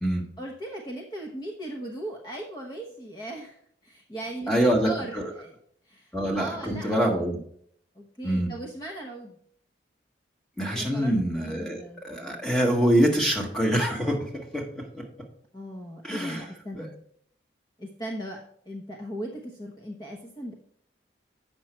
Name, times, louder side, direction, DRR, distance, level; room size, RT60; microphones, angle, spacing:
voice 1, 0.4-5.6 5.8-7.3 7.9-9.4 10.7-12.5 15.5-17.0 17.8-18.4 18.7-20.5, right 1 dB, 25° left, 0 dB, 1.0 m, -38 dB
voice 2, 4.5-5.3 6.1-7.4 8.2-8.5 10.6-15.0 16.0-16.4 16.8-16.9, right 1 dB, 5° left, -1 dB, 1.5 m, -25 dB
8.3 x 6.1 x 4.4 m, 0.65 s
head